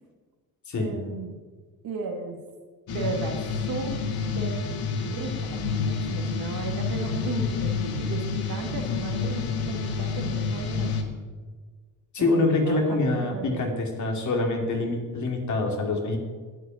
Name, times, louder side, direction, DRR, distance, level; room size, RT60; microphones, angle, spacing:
voice 1, 0.8-1.4 1.8-2.4 2.9-3.4 3.7-4.0 4.4-4.6 5.0-10.9 12.2-13.6, right 4 dB, 70° right, 2 dB, 2.6 m, -35 dB
sound 1, 2.9-11.0, left 5 dB, 85° left, 1.9 m, -29 dB
voice 2, 12.1-16.2, left 2 dB, 50° left, 2 dB, 2.8 m, -25 dB
11.0 x 8.6 x 9.1 m, 1.4 s
cardioid pair, 125°, 36 cm